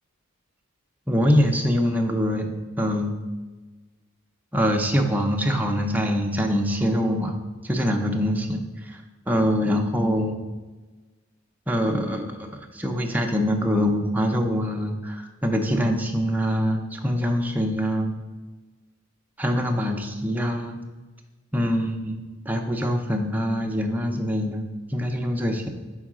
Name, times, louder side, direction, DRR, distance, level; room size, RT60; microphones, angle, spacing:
voice 1, 1.1-2.5 2.8-3.1 4.5-7.4 7.6-9.0 9.3-10.4 11.7-18.1 19.4-20.8 21.5-24.6 24.9-25.7, equal, 5° right, 2 dB, 0.5 m, -24 dB
4.7 x 4.6 x 6.1 m, 1.2 s
head